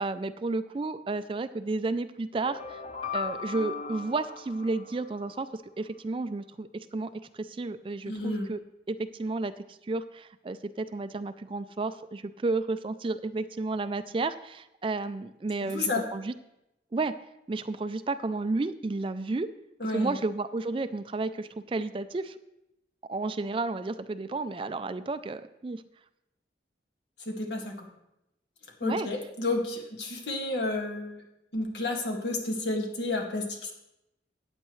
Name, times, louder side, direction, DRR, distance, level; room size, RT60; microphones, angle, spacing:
voice 1, 0.0-2.8 3.1-8.6 8.9-16.3 16.9-17.1 17.5-19.5 19.9-22.4 23.1-25.8 28.8-29.1, right 3 dB, 30° right, 12 dB, 0.3 m, -32 dB
sound 1, 2.3-5.4, left 5 dB, 30° left, 1.0 m, -38 dB
voice 2, 8.0-8.5 15.6-16.1 19.8-20.2 27.2-27.9 28.8-31.2 31.5-33.7, left 2 dB, 75° left, 0 dB, 1.9 m, -31 dB
14.0 x 9.0 x 3.2 m, 0.89 s
head